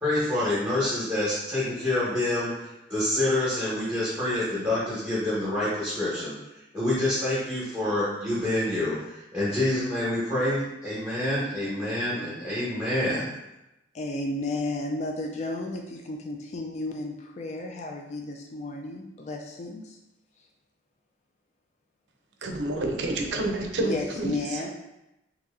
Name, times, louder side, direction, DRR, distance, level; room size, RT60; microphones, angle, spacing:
voice 1, 0.0-6.3 6.7-13.3, left 1 dB, 10° right, -10 dB, 1.0 m, -27 dB
voice 2, 13.9-20.0 23.8-24.7, left 2 dB, 40° left, 1 dB, 0.3 m, -33 dB
voice 3, 22.4-24.6, right 2 dB, 75° right, 3 dB, 0.5 m, -29 dB
2.9 x 2.8 x 3.5 m, 0.92 s
head